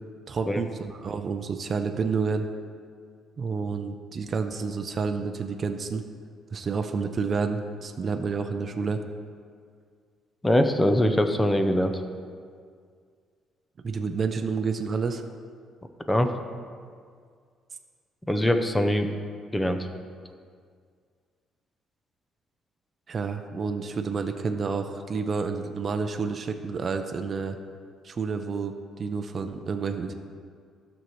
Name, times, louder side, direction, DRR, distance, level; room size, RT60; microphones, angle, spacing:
voice 1, 0.3-2.5 3.4-6.0 6.5-9.0 13.8-15.2 23.1-27.6 28.0-28.7 29.0-30.1, right 5 dB, 35° right, 6 dB, 0.5 m, -29 dB
voice 2, 10.4-12.0 16.1-16.3 18.3-19.1 19.5-19.9, left 1 dB, 10° left, 7 dB, 0.6 m, -22 dB
12.5 x 6.3 x 3.0 m, 2.1 s
cardioid pair, 135°, 0 cm